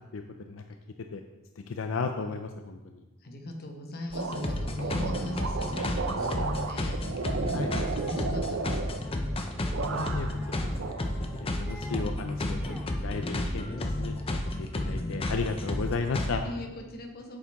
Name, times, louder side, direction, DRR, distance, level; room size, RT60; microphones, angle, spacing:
voice 1, 1.7-3.0 7.5-7.7 9.9-10.6 10.8-10.9 11.4-16.4, left 4 dB, 80° left, 6 dB, 0.5 m, -34 dB
voice 2, 3.2-7.0 7.5-8.9 11.1-11.2 13.8-14.0 16.2-17.4, left 1 dB, 50° left, 3 dB, 1.2 m, -40 dB
sound 1, 4.1-16.3, left 1 dB, 30° left, 0.7 m, -32 dB
sound 2, 4.1-9.4 9.7-10.4 10.8-11.7, right 4 dB, 75° right, 0.6 m, -34 dB
sound 3, 7.4-8.5 9.5-10.8 11.2-12.1 12.4-12.9, equal, 5° right, 0.7 m, -48 dB
8.4 x 7.3 x 3.6 m, 1.1 s
head